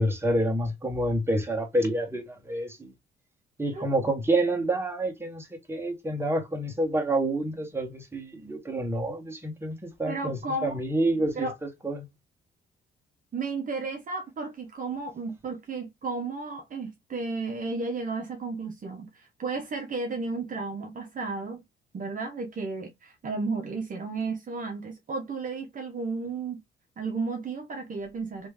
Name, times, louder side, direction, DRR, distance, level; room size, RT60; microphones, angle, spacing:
voice 1, 0.0-2.9 3.6-12.1, right 1 dB, 10° right, 1.6 m, -28 dB
voice 2, 10.1-10.8 11.3-11.5 13.3-21.6 21.9-26.6 27.0-28.5, right 3 dB, 45° right, 1.0 m, -33 dB
3.2 x 3.1 x 3.5 m
cardioid pair, 90°, 20 cm